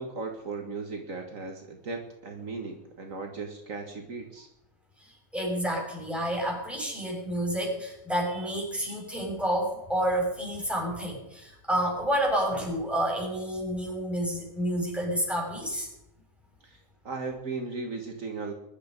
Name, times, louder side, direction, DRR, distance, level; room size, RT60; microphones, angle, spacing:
voice 1, 0.0-4.5 16.6-16.8 17.0-18.5, right 4 dB, 65° right, 3 dB, 2.1 m, -36 dB
voice 2, 5.0-15.9, right 1 dB, ahead, -2 dB, 6.2 m, -29 dB
22.0 x 11.5 x 5.3 m, 0.85 s
omnidirectional pair, 1.5 m